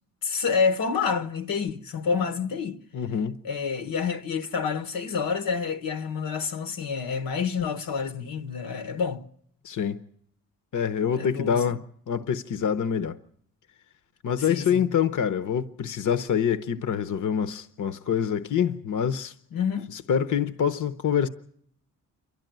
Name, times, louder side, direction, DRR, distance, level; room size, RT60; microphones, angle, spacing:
voice 1, 0.2-2.8 3.4-9.2 11.2-11.6 14.5-14.9 19.5-19.9, left 5 dB, 85° left, 1.3 m, -28 dB
voice 2, 2.9-3.3 9.6-10.0 10.7-11.8 12.1-13.2 14.2-19.3 19.9-21.3, left 8 dB, 60° left, 0.9 m, -26 dB
27.5 x 12.0 x 9.2 m
cardioid pair, 80°, 34 cm